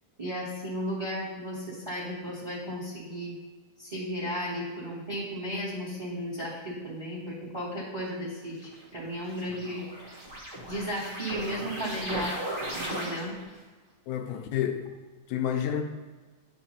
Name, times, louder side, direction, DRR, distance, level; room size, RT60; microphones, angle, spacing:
voice 1, 0.2-3.3 3.8-10.1 10.7-12.4 12.7-13.4, equal, 15° right, -8 dB, 1.9 m, -34 dB
sound 1, 8.6-13.6, right 1 dB, 45° right, 0.6 m, -37 dB
voice 2, 14.1-14.9 15.3-15.8, left 9 dB, 80° left, 5 dB, 2.0 m, -29 dB
11.0 x 5.2 x 2.8 m, 1.3 s
omnidirectional pair, 3.5 m